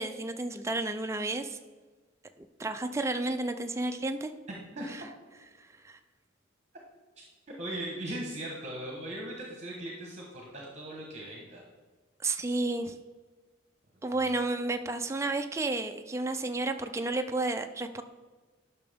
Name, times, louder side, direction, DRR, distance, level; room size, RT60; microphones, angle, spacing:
voice 1, 0.0-1.6 2.4-4.3 5.8-6.0 12.2-13.0 14.0-18.0, right 2 dB, 15° right, 7 dB, 0.4 m, -31 dB
voice 2, 4.5-4.9 7.6-11.6 12.4-12.5 14.1-14.4, right 1 dB, 35° right, -1 dB, 1.1 m, -39 dB
10.5 x 5.8 x 3.5 m, 1.3 s
head